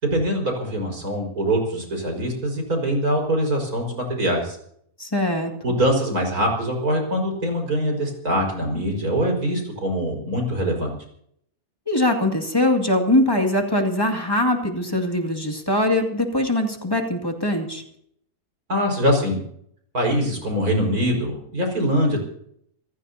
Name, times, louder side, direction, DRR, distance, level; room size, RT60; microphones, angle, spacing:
voice 1, 0.0-4.6 5.6-10.9 18.7-19.4 19.9-22.2, equal, 80° right, 2 dB, 5.7 m, -23 dB
voice 2, 5.0-5.5 11.9-17.8, left 1 dB, 15° left, 2 dB, 2.3 m, -22 dB
27.5 x 15.5 x 2.8 m, 0.67 s
omnidirectional pair, 1.5 m